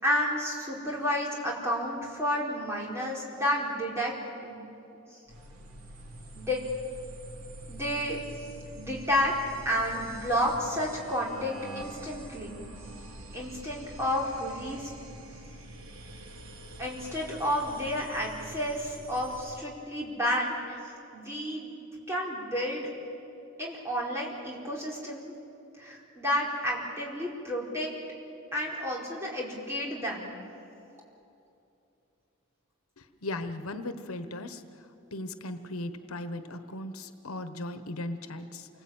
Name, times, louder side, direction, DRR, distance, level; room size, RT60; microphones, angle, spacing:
voice 1, 0.0-4.1 4.4-4.6 6.3-6.6 7.7-8.2 8.7-9.3 9.6-12.6 13.3-14.9 16.8-20.8 21.1-21.7 22.1-22.9 23.6-25.3 25.8-27.9 28.5-30.4, equal, 10° right, -4 dB, 4.4 m, -31 dB
sound 1, 5.3-19.6, right 1 dB, 80° right, 2.3 m, -45 dB
voice 2, 33.0-34.6 35.1-38.7, left 1 dB, 85° left, 10 dB, 1.2 m, -37 dB
28.5 x 20.0 x 8.9 m, 2.7 s
head